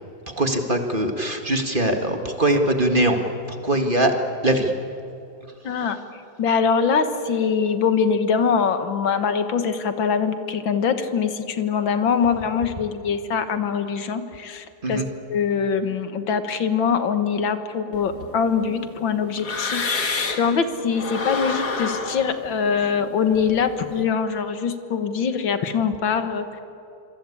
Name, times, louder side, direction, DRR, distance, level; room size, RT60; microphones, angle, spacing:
voice 1, 0.3-3.2 3.5-4.2 4.4-4.7 5.8-5.9 14.8-15.1, right 1 dB, 25° right, 4 dB, 1.9 m, -22 dB
voice 2, 5.6-6.0 6.4-15.0 15.3-26.5, left 6 dB, 75° left, 9 dB, 2.2 m, -23 dB
sound 1, 17.9-20.6 20.9-24.0, left 4 dB, 55° left, 2.6 m, -29 dB
26.0 x 26.0 x 8.6 m, 2.8 s
omnidirectional pair, 2.1 m